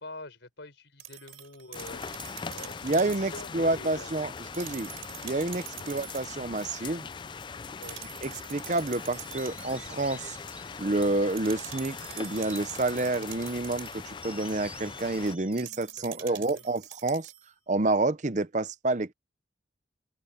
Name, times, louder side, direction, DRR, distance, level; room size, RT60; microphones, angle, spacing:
voice 1, 0.0-4.1 5.8-6.0 7.8-8.0 15.5-15.7 16.0-16.6, left 2 dB, 70° left, 4.4 m, -46 dB
sound 1, 1.0-3.3 4.4-6.4 7.8-9.8 11.4-14.1 15.5-17.5, right 13 dB, 90° right, 3.8 m, -45 dB
sound 2, 1.7-15.4, left 5 dB, 25° left, 0.3 m, -41 dB
voice 2, 2.8-4.9 5.2-7.1 8.2-10.4 10.8-17.3 17.7-19.1, right 2 dB, 40° right, 0.7 m, -29 dB
sound 3, 9.2-11.3 11.7-13.6 14.2-16.7, right 1 dB, 5° right, 3.0 m, -50 dB
open air
head